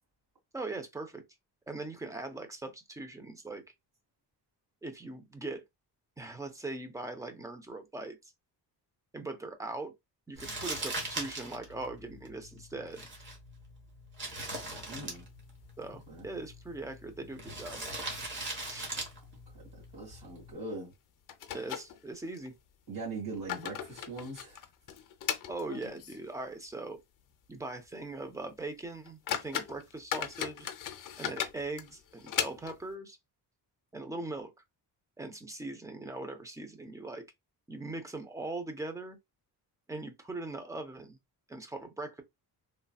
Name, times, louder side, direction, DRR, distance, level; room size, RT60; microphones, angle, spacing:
voice 1, 0.5-1.2 1.7-3.6 4.8-5.6 6.2-8.2 9.1-9.9 10.3-13.1 15.8-17.8 18.6-18.9 21.5-22.5 25.5-27.0 27.5-30.7 31.2-33.2 33.9-34.5 35.2-37.2 37.7-39.2 39.9-41.2 41.5-42.2, right 2 dB, 10° right, 0.4 m, -40 dB
Crumpling crinkling, 10.4-20.5, right 2 dB, 30° right, 1.1 m, -41 dB
sound 1, 14.7-15.5 15.8-15.9 16.3-16.4 17.0-17.5 17.8-17.9 18.5-18.7 19.0-19.2 20.6-20.7 21.3-22.5 23.1-26.3 26.7-26.8 27.3-27.4 27.9-28.0 28.6-28.7 29.0-32.9, left 9 dB, 55° left, 0.5 m, -38 dB
voice 2, 14.9-15.3 15.9-16.3 19.3-19.4 19.7-20.9 22.9-24.6, right 2 dB, 55° right, 2.1 m, -41 dB
3.2 x 2.7 x 2.3 m
cardioid pair, 170°, 39 cm